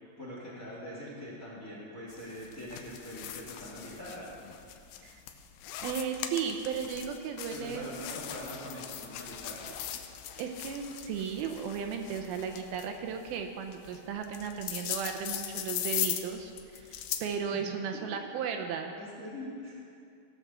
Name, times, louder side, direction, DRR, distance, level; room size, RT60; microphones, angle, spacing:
voice 1, 0.2-4.3 7.5-9.7 17.5-17.6 18.1-18.2 18.9-19.8, left 1 dB, 30° left, -6 dB, 1.7 m, -43 dB
sound 1, 2.1-17.4, left 11 dB, 85° left, 2.6 m, -40 dB
voice 2, 5.8-8.2 10.4-18.9, right 7 dB, 80° right, 5 dB, 2.5 m, -35 dB
16.0 x 6.2 x 6.7 m, 2.4 s
omnidirectional pair, 4.5 m